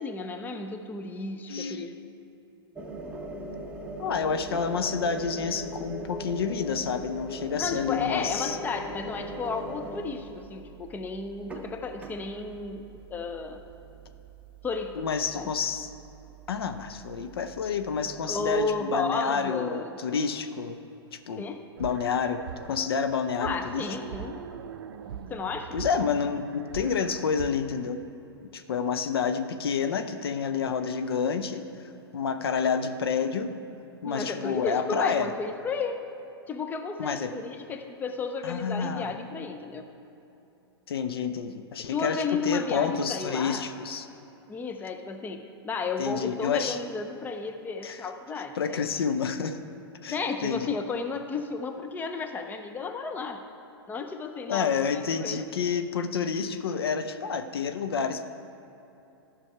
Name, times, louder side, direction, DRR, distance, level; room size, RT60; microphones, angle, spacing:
voice 1, 0.0-2.0 7.6-13.6 14.6-15.1 15.3-15.5 18.3-20.0 21.4-21.6 23.4-24.5 25.3-25.8 34.0-36.0 36.5-39.9 41.8-43.7 44.5-48.9 50.1-53.4 53.9-55.4, left 4 dB, 15° left, 6 dB, 0.6 m, -33 dB
voice 2, 1.5-1.8 4.0-8.6 15.0-15.9 16.5-20.8 21.1-21.4 21.8-23.9 25.7-28.0 28.5-33.6 34.0-35.3 37.0-37.4 38.4-39.1 40.9-44.1 46.0-46.8 47.8-48.0 48.6-49.6 50.0-50.7 54.5-58.2, left 6 dB, 65° left, 9 dB, 0.6 m, -29 dB
sound 1, 2.7-18.7, right 1 dB, 10° right, 1.1 m, -41 dB
sound 2, 21.8-27.8, right 7 dB, 60° right, 0.5 m, -41 dB
13.5 x 6.1 x 4.6 m, 2.9 s
figure-of-eight pair, 105°, 14 cm